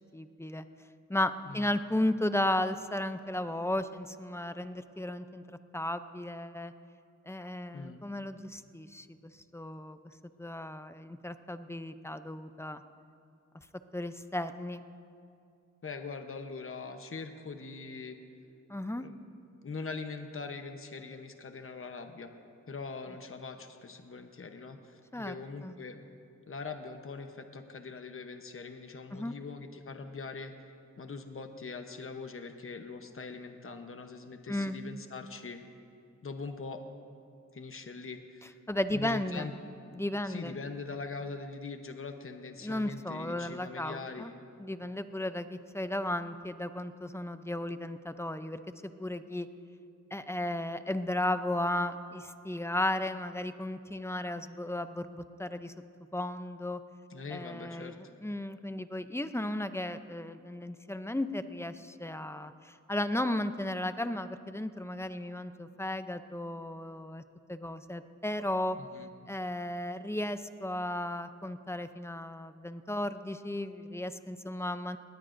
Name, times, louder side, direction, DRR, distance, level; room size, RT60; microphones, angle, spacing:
voice 1, 0.1-0.6 1.1-5.4 5.7-6.7 7.3-9.1 9.5-10.0 10.4-12.8 13.9-14.8 18.7-19.1 25.1-25.3 25.6-25.7 29.1-29.3 34.5-34.8 38.7-39.5 39.9-40.6 42.6-44.3 44.6-48.6 49.0-49.5 50.1-55.7 56.1-56.8 57.3-67.2 67.5-68.8 69.3-75.0, left 1 dB, 10° left, 10 dB, 0.6 m, -34 dB
voice 2, 1.5-1.8 7.7-8.0 15.8-18.2 19.0-19.2 19.6-22.3 22.7-26.0 26.5-30.5 31.0-35.6 36.2-36.8 37.5-38.5 38.9-39.5 40.2-44.4 57.1-58.0 68.8-69.1, left 4 dB, 45° left, 6 dB, 1.0 m, -42 dB
20.0 x 18.5 x 2.6 m, 2.5 s
wide cardioid pair, 70°, 30 cm